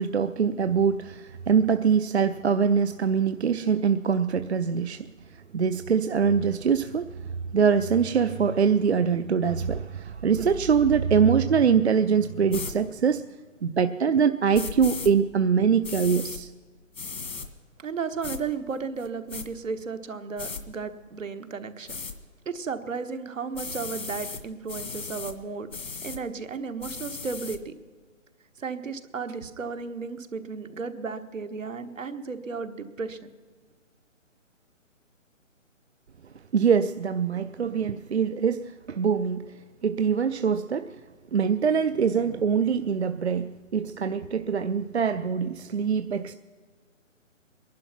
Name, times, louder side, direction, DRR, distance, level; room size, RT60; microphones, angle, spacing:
voice 1, 0.0-5.1 5.5-7.1 7.5-13.2 13.6-16.5 36.5-39.4 39.8-40.9 41.3-46.4, right 6 dB, 55° right, 11 dB, 0.5 m, -23 dB
sound 1, 12.5-12.7 14.5-15.1 15.8-16.4 16.9-17.5 18.2-18.4 19.0-19.5 20.4-20.6 21.9-22.1 23.5-24.4 24.7-25.3 25.7-26.2 26.8-27.6, left 4 dB, 80° left, 2.0 m, -36 dB
voice 2, 17.8-22.0 22.4-25.7 26.0-27.7 28.6-33.3, right 5 dB, 75° right, 9 dB, 1.4 m, -34 dB
20.5 x 11.5 x 5.8 m, 1.5 s
hypercardioid pair, 180°, 39 cm